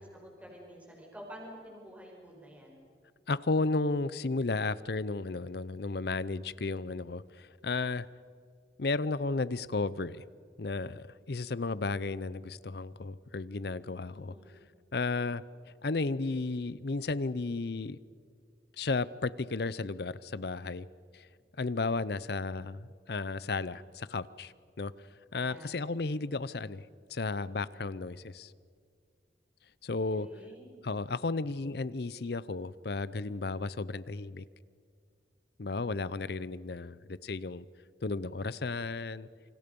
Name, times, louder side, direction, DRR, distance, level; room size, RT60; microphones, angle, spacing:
voice 1, 0.0-2.8 14.2-14.6 25.4-25.9 30.1-30.7, equal, 10° right, -1 dB, 5.1 m, -49 dB
voice 2, 3.3-8.1 8.8-10.2 10.6-14.3 14.9-15.4 15.8-18.0 18.8-20.9 21.1-21.3 21.6-24.9 25.3-28.5 29.8-30.3 30.8-34.4 35.6-37.6 38.0-39.3, left 3 dB, 55° left, 18 dB, 0.6 m, -33 dB
28.0 x 25.5 x 5.4 m, 2.2 s
head